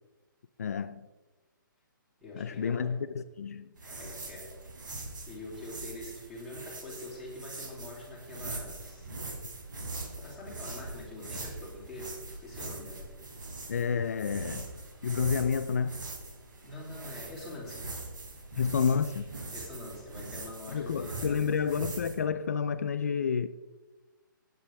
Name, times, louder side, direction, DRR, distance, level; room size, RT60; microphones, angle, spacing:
voice 1, 0.6-1.1 2.4-3.7 13.7-14.7 15.0-16.0 18.6-19.3 20.7-23.5, left 6 dB, 45° left, 0.5 m, -30 dB
voice 2, 2.2-3.0 3.8-4.6 5.3-9.1 10.2-13.1 16.6-17.9 19.5-21.5, left 2 dB, ahead, 2.9 m, -44 dB
sound 1, 3.8-22.1, right 2 dB, 65° right, 3.8 m, -42 dB
18.0 x 9.2 x 3.5 m
hypercardioid pair, 175°, 11 cm